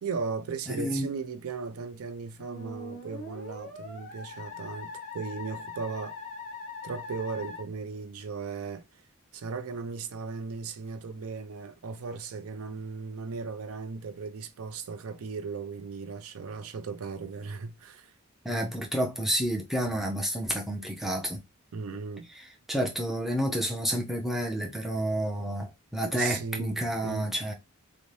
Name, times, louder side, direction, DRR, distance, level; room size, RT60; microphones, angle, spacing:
voice 1, 0.0-6.2 6.8-8.8 9.3-18.1 21.7-22.3 26.0-27.3, right 5 dB, 80° right, 0.4 m, -37 dB
voice 2, 0.7-1.1 18.4-21.4 22.3-27.5, equal, ahead, 0.4 m, -30 dB
Musical instrument, 2.4-7.6, left 3 dB, 35° left, 0.9 m, -42 dB
2.6 x 2.1 x 3.1 m
head